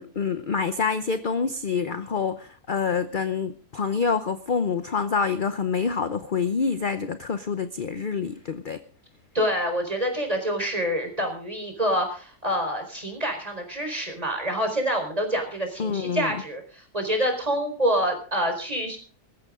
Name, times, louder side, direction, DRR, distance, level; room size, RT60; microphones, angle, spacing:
voice 1, 0.0-8.8 15.8-16.3, left 5 dB, 40° left, 10 dB, 0.8 m, -27 dB
voice 2, 9.3-19.0, equal, 25° right, 4 dB, 4.5 m, -27 dB
19.5 x 14.5 x 3.7 m, 0.40 s
omnidirectional pair, 1.6 m